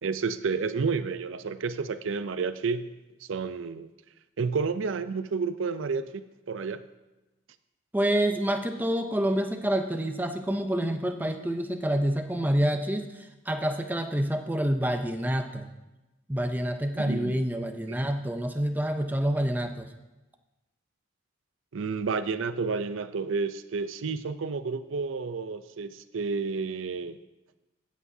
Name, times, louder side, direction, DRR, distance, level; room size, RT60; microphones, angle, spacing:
voice 1, 0.0-2.9 3.2-3.9 4.4-6.8 17.0-17.4 17.9-18.0 21.7-27.2, right 4 dB, 70° right, 12 dB, 0.5 m, -30 dB
voice 2, 7.9-13.1 13.5-15.7 16.3-19.9, right 1 dB, 10° right, 6 dB, 0.5 m, -27 dB
15.5 x 8.3 x 2.7 m, 1.1 s
head